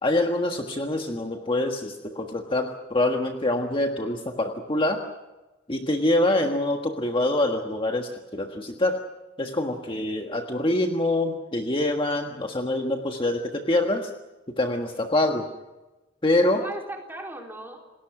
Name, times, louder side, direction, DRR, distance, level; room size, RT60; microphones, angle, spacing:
voice 1, 0.0-5.1 5.7-9.0 9.4-14.1 14.5-15.5 16.2-16.6, left 1 dB, 25° left, 3 dB, 1.5 m, -25 dB
voice 2, 9.5-10.1 16.4-17.8, right 1 dB, 10° right, 1 dB, 4.1 m, -39 dB
28.5 x 20.0 x 6.1 m, 1.1 s
head